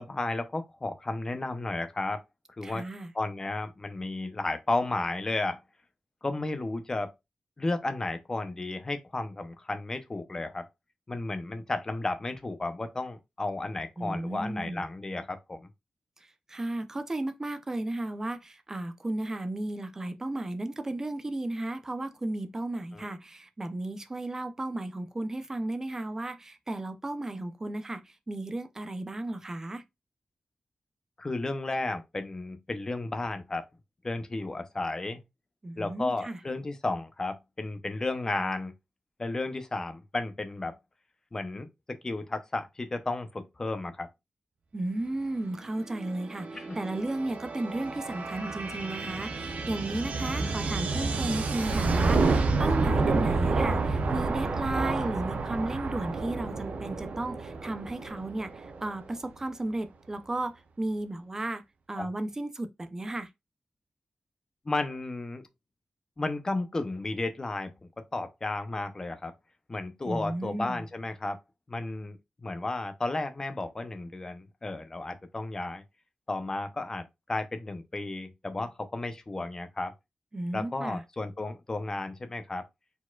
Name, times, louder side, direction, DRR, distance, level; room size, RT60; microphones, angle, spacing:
voice 1, 0.0-2.2 2.6-2.8 3.1-5.6 6.2-7.1 7.6-10.6 11.1-15.7 22.9-23.1 31.2-33.7 34.0-35.2 35.8-38.7 39.2-40.8 41.3-44.1 46.5-46.8 50.3-50.5 62.0-62.1 64.7-65.4 66.2-67.7 68.1-69.3 69.7-71.4 71.7-75.8 76.3-79.9 80.5-82.7, left 2 dB, 25° left, 0.7 m, -33 dB
voice 2, 2.6-3.1 14.0-14.8 16.5-28.0 28.3-29.8 35.6-36.4 44.7-61.6 61.9-63.3 70.1-70.8 80.3-81.0, right 2 dB, 20° right, 0.5 m, -34 dB
sound 1, 45.6-59.1, right 3 dB, 80° right, 0.7 m, -29 dB
4.8 x 4.1 x 2.3 m
wide cardioid pair, 170°, 2 cm